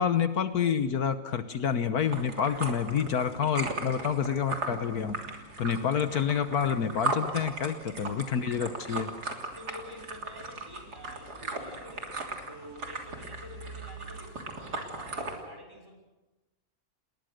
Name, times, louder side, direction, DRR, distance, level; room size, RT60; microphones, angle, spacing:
voice 1, 0.0-5.2 5.6-9.1, left 7 dB, 70° left, 10 dB, 1.6 m, -28 dB
sound 1, 2.0-15.4, right 3 dB, 80° right, 3.7 m, -37 dB
voice 2, 9.2-12.2 12.5-16.0, left 1 dB, 15° right, 2 dB, 6.2 m, -49 dB
29.5 x 21.0 x 6.6 m, 1.0 s
omnidirectional pair, 1.7 m